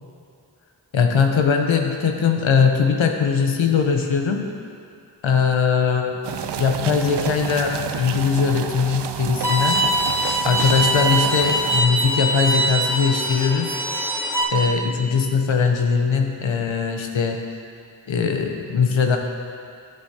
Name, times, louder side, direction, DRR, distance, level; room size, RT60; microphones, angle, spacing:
voice 1, 0.9-4.5 5.2-6.2 6.6-9.8 10.4-13.8 14.5-17.4 18.1-19.2, left 6 dB, 75° left, 3 dB, 0.9 m, -20 dB
sound 1, 6.2-11.8, right 8 dB, 65° right, 0.5 m, -30 dB
Bowed string instrument, 9.4-14.4, right 1 dB, 5° right, 1.5 m, -22 dB
10.5 x 7.8 x 2.8 m, 2.4 s
cardioid pair, 45°, 46 cm